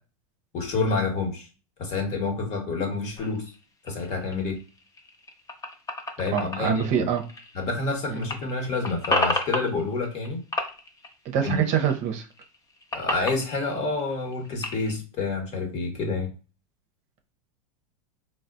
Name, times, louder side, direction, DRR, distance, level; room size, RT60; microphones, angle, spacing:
voice 1, 0.5-1.5 1.8-3.5 3.8-4.6 6.2-7.1 7.5-10.4 11.4-11.6 12.9-16.3, left 3 dB, 40° left, 4 dB, 1.1 m, -28 dB
sound 1, 3.2-7.9 8.2-10.3 10.5-12.0 12.3-14.9, left 2 dB, 20° left, 0.7 m, -32 dB
voice 2, 6.3-7.2 8.1-8.2 11.3-12.3, right 8 dB, 40° right, 4 dB, 0.7 m, -25 dB
4.1 x 2.1 x 2.5 m, 0.34 s
hypercardioid pair, 100°, 18 cm